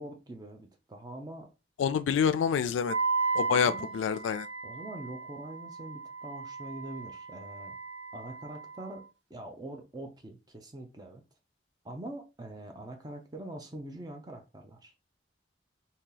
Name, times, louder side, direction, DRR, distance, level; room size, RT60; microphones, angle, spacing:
voice 1, 0.0-1.5 3.3-4.0 4.6-7.8 8.1-9.0 9.3-11.2 11.8-14.9, right 1 dB, 20° right, 0.5 m, -44 dB
voice 2, 1.8-3.0 3.3-4.5, left 7 dB, 85° left, 0.3 m, -27 dB
Wind instrument woodwind instrument, 2.9-9.0, right 4 dB, 80° right, 0.5 m, -35 dB
2.8 x 2.7 x 3.8 m
head